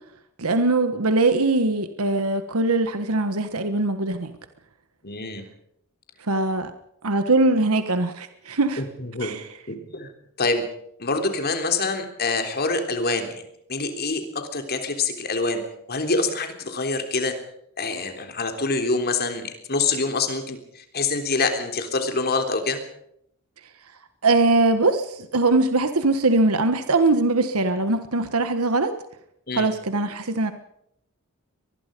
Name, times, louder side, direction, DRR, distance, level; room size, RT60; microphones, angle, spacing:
voice 1, 0.4-4.3 6.3-6.7 7.0-8.8 9.2-9.5 24.2-28.9 29.5-30.5, right 2 dB, 85° right, 9 dB, 1.4 m, -21 dB
voice 2, 5.0-5.5 8.8-9.3 9.7-10.1 10.4-10.7 11.0-13.4 13.7-15.6 15.9-17.3 17.8-22.8 29.5-29.7, left 3 dB, 45° left, 6 dB, 3.5 m, -26 dB
24.0 x 20.5 x 5.3 m, 0.74 s
head